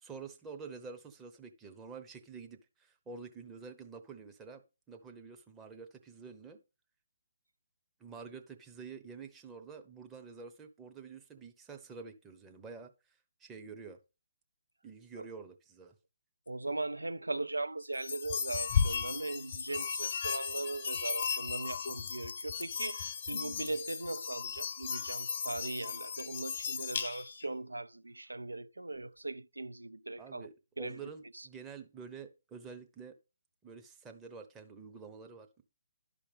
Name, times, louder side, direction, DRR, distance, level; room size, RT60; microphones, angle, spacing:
voice 1, 0.0-4.6 4.9-6.6 8.0-12.9 13.4-14.0 14.8-15.9 30.2-33.1 33.6-35.6, right 5 dB, 10° right, 0.8 m, -48 dB
voice 2, 16.5-30.5 30.8-31.5, right 2 dB, 80° right, 0.4 m, -39 dB
sound 1, 17.9-27.5, left 6 dB, 45° left, 0.6 m, -36 dB
11.5 x 5.0 x 3.4 m
figure-of-eight pair, 140°, 0 cm